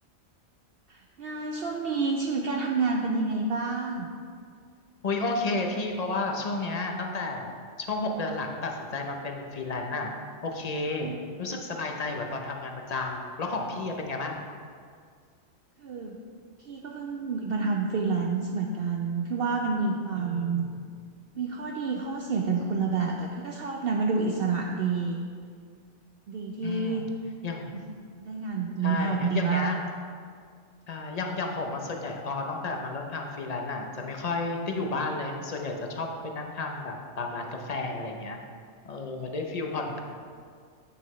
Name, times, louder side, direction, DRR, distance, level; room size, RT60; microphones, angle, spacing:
voice 1, 0.9-4.1 11.0-11.2 15.8-16.2 16.6-20.6 21.3-25.2 26.3-27.0 27.7-29.7, right 4 dB, 60° right, 0 dB, 0.6 m, -29 dB
voice 2, 5.0-7.5 7.8-10.1 10.4-11.1 11.4-14.5 20.2-20.6 26.6-27.0 27.4-27.8 28.8-29.8 30.9-38.4 38.8-40.0, left 3 dB, 40° left, 2 dB, 0.6 m, -32 dB
8.7 x 7.0 x 3.1 m, 2.1 s
omnidirectional pair, 1.4 m